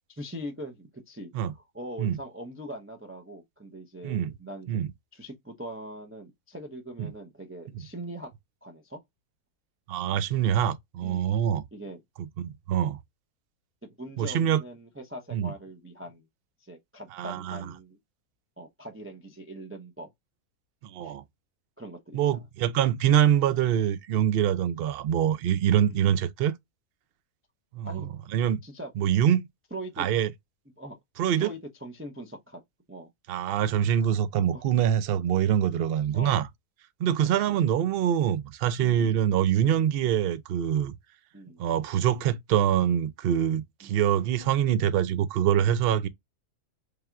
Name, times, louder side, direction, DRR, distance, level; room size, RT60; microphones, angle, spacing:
voice 1, 0.1-4.8 5.1-8.3 8.6-9.0 11.0-11.4 11.7-12.0 14.0-16.2 16.6-18.0 18.6-20.1 21.0-21.1 21.8-22.2 25.9-26.0 27.8-28.1 28.6-28.9 29.7-30.1 30.8-31.0 31.4-32.6 32.9-33.1 34.5-34.6 36.1-36.4 37.3-37.6 39.0-39.2 41.3-41.6 43.8-43.9, right 1 dB, 20° right, 0.3 m, -41 dB
voice 2, 9.9-11.6 12.2-13.0 14.2-14.6 15.3-15.5 17.1-17.7 20.8-21.2 22.1-26.5 27.7-28.0 28.3-28.6 29.0-29.5 30.0-30.3 31.2-31.5 33.3-36.5 37.0-40.9 41.6-46.1, right 10 dB, 75° right, 0.5 m, -25 dB
3.4 x 2.4 x 4.4 m
omnidirectional pair, 1.6 m